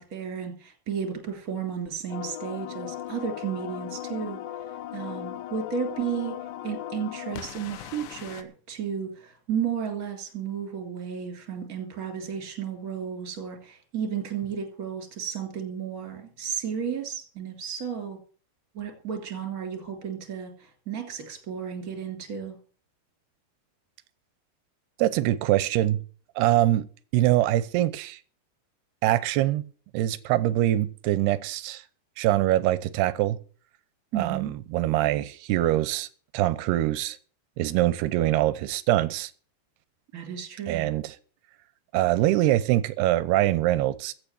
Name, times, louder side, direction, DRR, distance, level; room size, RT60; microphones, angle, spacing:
voice 1, 0.0-4.4 4.9-6.4 6.6-18.2 18.7-22.6 34.1-34.5 40.1-40.9, right 7 dB, 25° right, 2.8 m, -33 dB
sound 1, 2.1-8.4, left 11 dB, 90° left, 3.3 m, -38 dB
voice 2, 25.0-26.0 26.4-26.9 27.1-28.2 29.0-29.6 29.9-31.8 32.2-33.4 34.2-36.1 36.3-37.2 37.6-39.3 40.7-41.1 41.9-44.1, right 14 dB, 80° right, 2.7 m, -23 dB
15.5 x 6.1 x 8.8 m
omnidirectional pair, 4.9 m